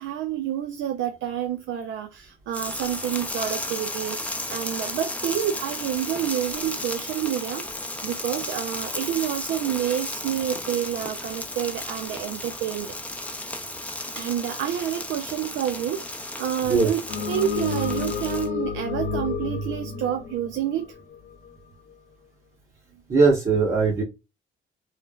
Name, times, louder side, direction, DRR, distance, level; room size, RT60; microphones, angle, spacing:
voice 1, 0.0-13.4 14.1-17.0 17.3-20.9, right 10 dB, 75° right, 0.4 m, -29 dB
sound 1, 2.5-18.5, left 1 dB, 5° left, 0.5 m, -34 dB
sound 2, 17.1-21.5, left 5 dB, 60° left, 0.5 m, -30 dB
voice 2, 23.1-24.0, right 4 dB, 40° right, 1.1 m, -20 dB
3.2 x 2.0 x 2.2 m
cardioid pair, 90°, 20 cm